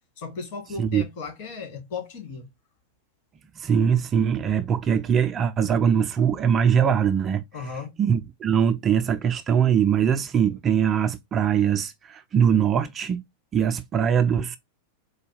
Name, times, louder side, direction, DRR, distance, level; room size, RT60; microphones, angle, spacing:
voice 1, 0.2-2.5 7.5-7.9, left 5 dB, 50° left, 1.6 m, -35 dB
voice 2, 3.6-7.4 8.0-13.2 13.5-14.6, right 8 dB, 25° right, 0.4 m, -22 dB
4.1 x 2.2 x 3.2 m
figure-of-eight pair, 90°, 0 cm